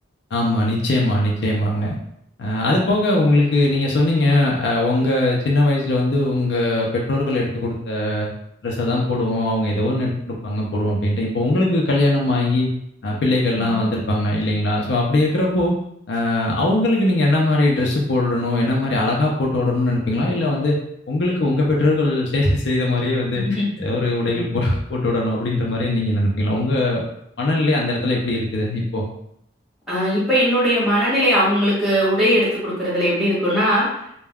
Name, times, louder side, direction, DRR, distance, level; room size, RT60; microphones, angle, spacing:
voice 1, 0.3-1.9 2.4-8.3 8.6-12.7 13.0-15.7 16.1-20.8 21.1-23.4 23.8-27.0 27.4-29.1, left 2 dB, 65° left, -2 dB, 0.5 m, -20 dB
voice 2, 23.3-23.6 24.2-24.5 29.9-33.9, equal, ahead, -10 dB, 1.4 m, -20 dB
3.4 x 2.2 x 2.2 m, 0.75 s
head